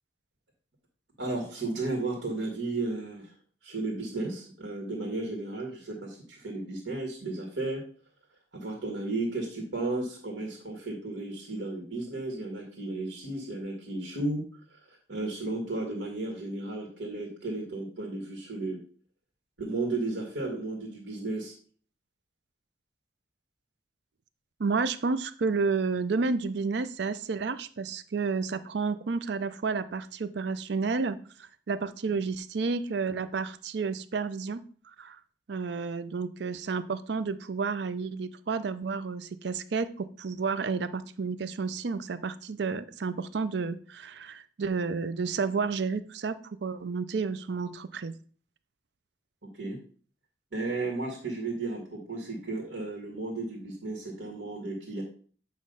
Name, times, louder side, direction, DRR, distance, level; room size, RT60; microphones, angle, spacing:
voice 1, 1.2-3.3 3.6-7.8 8.5-14.4 15.1-18.8 19.6-21.5 49.6-49.8 50.5-55.0, right 2 dB, 90° right, -1 dB, 2.1 m, -34 dB
voice 2, 24.6-35.2 35.5-48.1, right 4 dB, 65° right, 13 dB, 0.5 m, -31 dB
8.4 x 3.1 x 5.5 m, 0.42 s
head